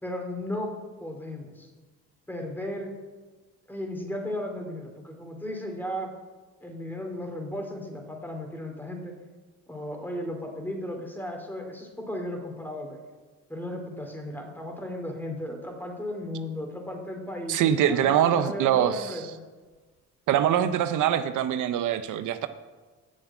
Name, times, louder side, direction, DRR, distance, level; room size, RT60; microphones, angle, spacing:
voice 1, 0.0-0.7 1.0-1.7 2.3-3.0 3.7-6.1 6.6-9.1 9.7-13.0 13.5-19.4, left 1 dB, 5° left, 2 dB, 2.6 m, -35 dB
voice 2, 17.5-19.2 20.3-22.5, right 10 dB, 80° right, 10 dB, 0.7 m, -23 dB
8.7 x 7.3 x 8.2 m, 1.3 s
cardioid pair, 90°, 30 cm